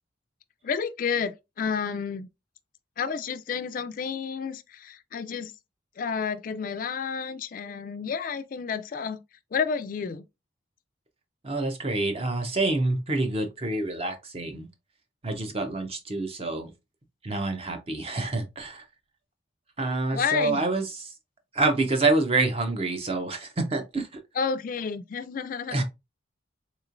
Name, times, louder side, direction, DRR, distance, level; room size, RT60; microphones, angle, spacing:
voice 1, 0.6-2.3 3.0-5.5 6.0-9.2 9.5-10.2 20.1-20.6 24.4-25.8, left 6 dB, 45° left, 0.3 m, -30 dB
voice 2, 11.4-14.7 15.2-16.7 17.2-18.9 19.8-21.1 21.5-24.2 25.7-25.8, right 2 dB, 30° right, 0.6 m, -27 dB
3.7 x 3.0 x 2.5 m
head